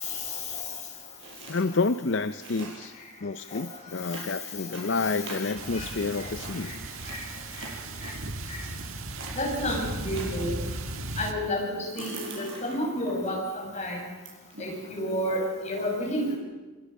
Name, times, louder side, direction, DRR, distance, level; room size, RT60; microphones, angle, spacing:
sound 1, 1.2-1.6 2.0-2.1 2.2-3.0 4.0-5.9 6.3-8.1 8.6-8.9 9.1-10.4 11.8-13.3 13.7-13.8 14.2-14.8, right 3 dB, 60° right, 6.6 m, -42 dB
voice 1, 1.5-2.9 3.2-6.7, left 3 dB, 55° left, 11 dB, 0.6 m, -29 dB
sound 2, 5.6-11.3, right 2 dB, 75° right, 1.6 m, -36 dB
voice 2, 9.3-10.6 11.2-14.0 14.6-16.4, equal, 30° left, -1 dB, 6.2 m, -30 dB
28.0 x 21.0 x 5.5 m, 1.2 s
head